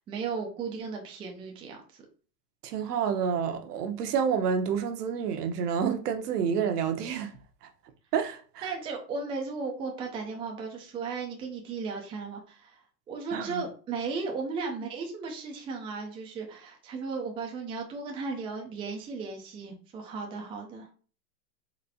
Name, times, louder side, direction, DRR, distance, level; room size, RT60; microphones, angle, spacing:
voice 1, 0.1-2.0 8.6-20.9, right 4 dB, 10° right, 0.5 m, -36 dB
voice 2, 2.6-7.3 7.6-7.7 8.1-8.7 13.3-13.6, right 7 dB, 65° right, 1.0 m, -29 dB
4.2 x 3.0 x 2.7 m
hypercardioid pair, 125°, 49 cm